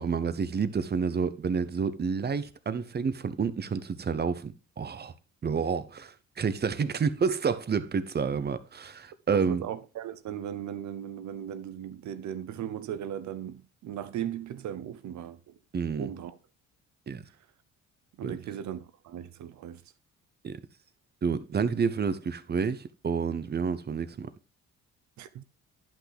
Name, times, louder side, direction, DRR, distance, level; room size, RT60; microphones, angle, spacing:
voice 1, 0.0-5.1 5.4-9.6 15.7-16.1 17.1-17.2 18.2-18.4 20.4-20.6 21.2-24.3, right 6 dB, 35° right, 0.8 m, -29 dB
voice 2, 9.3-15.6 15.9-16.4 18.2-19.8 25.2-25.4, right 10 dB, 70° right, 0.8 m, -37 dB
10.5 x 5.9 x 3.4 m
cardioid pair, 90°, 30 cm